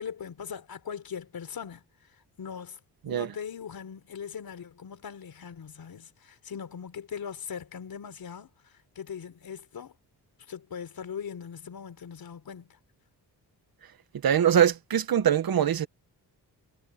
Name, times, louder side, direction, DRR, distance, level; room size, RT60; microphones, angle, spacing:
voice 1, 0.0-1.8 2.4-2.8 3.0-10.0 10.5-12.8, left 7 dB, 60° left, 4.0 m, -40 dB
voice 2, 14.2-15.9, right 9 dB, 60° right, 1.6 m, -23 dB
wide cardioid pair, 125°, 41 cm